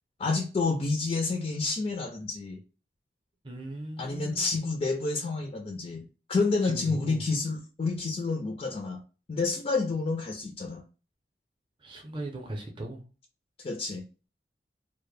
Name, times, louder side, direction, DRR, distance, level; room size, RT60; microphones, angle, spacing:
voice 1, 0.2-2.6 4.0-6.0 6.3-9.0 9.3-10.8 13.6-14.0, left 3 dB, 35° left, 2 dB, 0.3 m, -29 dB
voice 2, 3.4-4.5 6.6-7.2 11.8-13.0, right 1 dB, 30° right, 1 dB, 0.6 m, -38 dB
2.1 x 2.0 x 3.1 m, 0.34 s
head